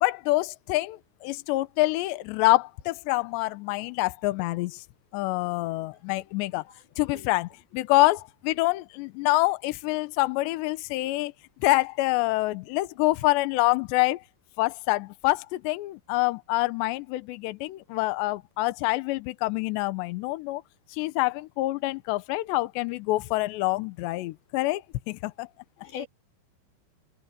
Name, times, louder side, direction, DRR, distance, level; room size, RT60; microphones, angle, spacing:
voice 1, 0.0-4.8 5.1-6.6 7.0-7.5 7.7-11.3 11.6-14.2 14.6-20.6 20.9-25.5, left 20 dB, 80° left, 3.0 m, -26 dB
voice 2, 6.5-6.8 7.1-7.3 8.6-8.7 25.8-26.1, left 7 dB, 55° left, 5.2 m, -42 dB
omnidirectional pair, 5.2 m